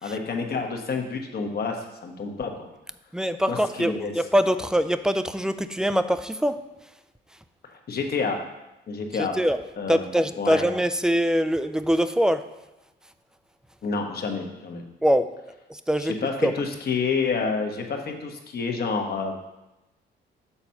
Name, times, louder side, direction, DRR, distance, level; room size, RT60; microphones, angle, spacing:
voice 1, 0.0-2.7 3.5-4.1 7.9-8.4 8.9-9.4 9.8-10.1 10.4-10.6 13.8-14.8 16.0-19.4, left 4 dB, 50° left, 3 dB, 1.2 m, -28 dB
voice 2, 3.1-6.6 9.1-9.6 9.9-12.5 15.0-15.3 15.7-16.1 16.4-16.5, equal, 5° right, 10 dB, 0.4 m, -23 dB
7.0 x 4.1 x 5.7 m, 0.98 s
cardioid pair, 90°, 20 cm